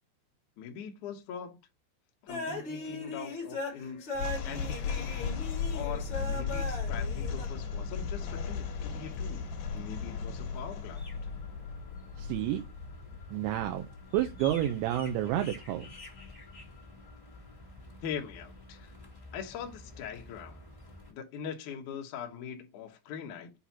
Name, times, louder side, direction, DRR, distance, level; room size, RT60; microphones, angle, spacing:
voice 1, 0.6-1.6 2.2-5.2 5.7-11.1 18.0-18.9 19.3-20.7 21.1-23.5, left 7 dB, 80° left, 1.8 m, -42 dB
sound 1, 2.3-7.5, left 2 dB, 40° left, 1.7 m, -38 dB
sound 2, 4.1-15.4, left 5 dB, 60° left, 2.8 m, -36 dB
sound 3, 5.0-21.1, left 2 dB, 20° left, 0.9 m, -50 dB
voice 2, 12.2-12.6 13.3-13.9 14.1-15.9, right 12 dB, 85° right, 3.0 m, -30 dB
8.1 x 2.8 x 5.7 m
omnidirectional pair, 5.2 m